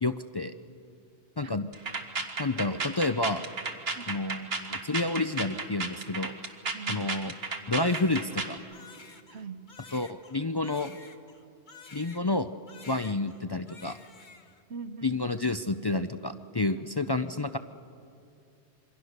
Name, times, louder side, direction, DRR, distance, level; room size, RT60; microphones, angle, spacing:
voice 1, 0.0-0.5 1.4-1.7 2.4-3.4 4.1-6.3 6.9-7.3 7.7-8.6 9.9-11.0 11.9-12.5 12.9-14.0 15.0-17.6, left 2 dB, 35° left, 9 dB, 0.4 m, -29 dB
sound 1, 1.7-8.6, right 4 dB, 70° right, 1.8 m, -34 dB
voice 2, 6.7-7.0 9.3-9.6 14.7-15.2 16.8-16.9, right 5 dB, 85° right, 11 dB, 1.3 m, -41 dB
Crying sobbing, 7.7-12.4 12.7-13.4 13.7-14.6, left 3 dB, 50° left, 1.4 m, -50 dB
27.0 x 23.5 x 6.7 m, 2.5 s
omnidirectional pair, 1.1 m